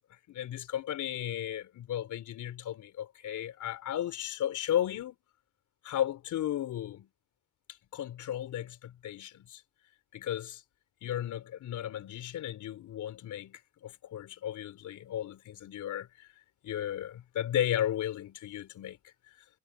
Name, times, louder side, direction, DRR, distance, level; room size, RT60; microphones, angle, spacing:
voice 1, 0.3-5.2 5.8-7.1 7.9-9.6 10.1-10.6 11.0-16.1 16.6-19.0, left 11 dB, 75° left, 3.5 m, -34 dB
cardioid pair, 90°, 30 cm